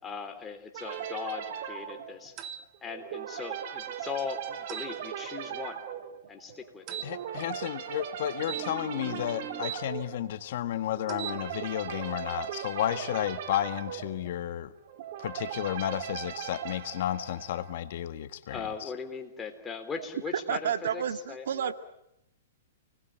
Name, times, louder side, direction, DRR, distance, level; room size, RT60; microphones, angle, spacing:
voice 1, 0.0-2.4 2.8-5.8 6.3-7.0 18.5-21.7, left 6 dB, 15° left, 4 dB, 3.6 m, -39 dB
sound 1, 0.7-17.9, right 9 dB, 50° right, 2.9 m, -39 dB
sound 2, 2.4-2.6 4.7-4.9 6.9-7.1 8.4-9.8 11.0-11.4, right 10 dB, 30° right, 1.7 m, -39 dB
voice 2, 7.0-14.7 15.2-18.9, left 12 dB, 60° left, 11 dB, 1.6 m, -32 dB
voice 3, 20.5-21.7, right 8 dB, 70° right, 10 dB, 1.8 m, -30 dB
29.5 x 20.5 x 9.0 m, 0.82 s
hypercardioid pair, 140°, 0 cm